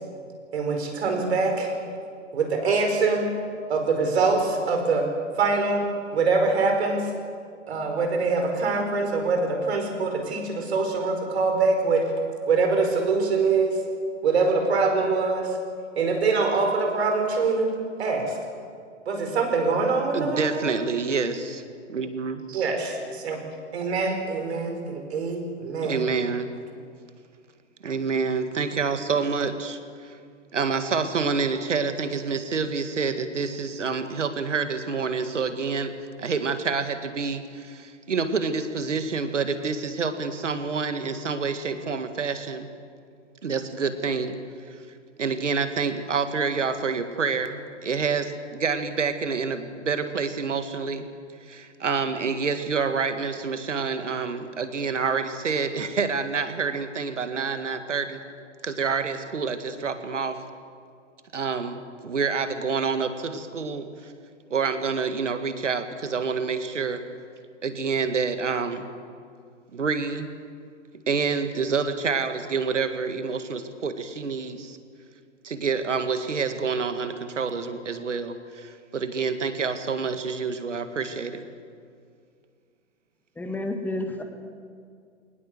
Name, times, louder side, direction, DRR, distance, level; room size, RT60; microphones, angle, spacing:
voice 1, 0.5-1.7 2.3-3.3 3.7-5.1 5.4-5.8 6.1-7.1 7.7-12.0 12.5-13.8 14.2-15.5 16.0-17.7 18.0-18.3 19.1-20.7 22.5-23.4 23.7-26.0, right 4 dB, 60° right, 4 dB, 5.1 m, -24 dB
voice 2, 20.1-21.6 21.9-22.5 25.8-26.5 27.8-30.2 30.5-42.7 43.4-44.4 44.7-44.8 45.2-51.1 51.4-58.2 58.6-60.4 61.3-64.1 64.5-67.0 67.6-68.9 69.7-70.3 71.1-74.8 75.4-81.4, right 5 dB, 75° right, 9 dB, 2.0 m, -27 dB
voice 3, 83.4-84.2, left 2 dB, 5° left, 5 dB, 1.9 m, -30 dB
21.5 x 19.5 x 7.9 m, 2.2 s
figure-of-eight pair, 120°, 37 cm